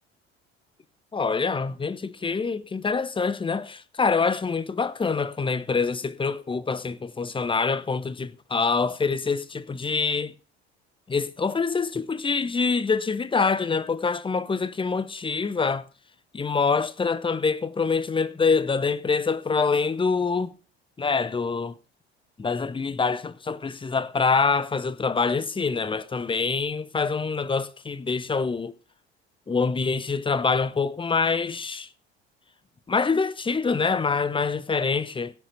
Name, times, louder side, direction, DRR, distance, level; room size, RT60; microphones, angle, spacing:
voice 1, 1.1-10.3 11.1-15.9 16.3-20.5 21.0-21.8 22.4-28.7 29.5-31.9 32.9-35.3, left 4 dB, 15° left, 0.9 m, -25 dB
17.0 x 7.0 x 4.1 m
figure-of-eight pair, 60°, 33 cm